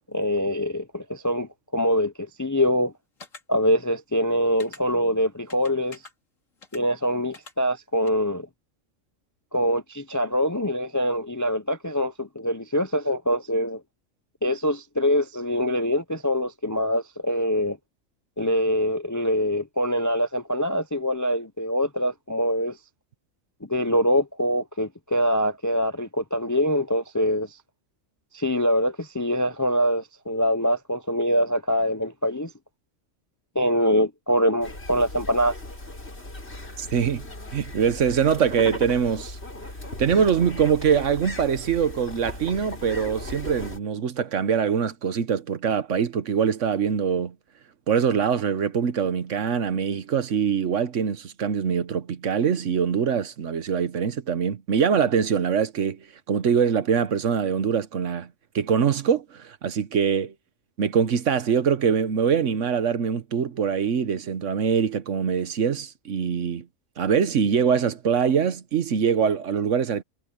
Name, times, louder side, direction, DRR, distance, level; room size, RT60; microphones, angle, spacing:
voice 1, 0.1-2.9 3.5-6.0 6.7-8.5 9.5-13.8 14.4-17.8 18.4-22.8 23.7-27.6 28.3-32.5 33.5-35.5, equal, 20° left, 0.5 m, -24 dB
sound 1, 3.2-3.4 4.6-4.8 5.5-6.1 6.6-6.8 7.3-7.5 8.1-8.2, left 3 dB, 75° left, 3.2 m, -44 dB
sound 2, 34.6-43.8, left 1 dB, 50° left, 4.4 m, -37 dB
voice 2, 36.8-37.3 37.5-39.4 40.0-47.3 47.9-58.3 58.5-60.3 60.8-66.6 67.0-70.0, right 7 dB, 70° right, 1.3 m, -23 dB
omnidirectional pair, 1.4 m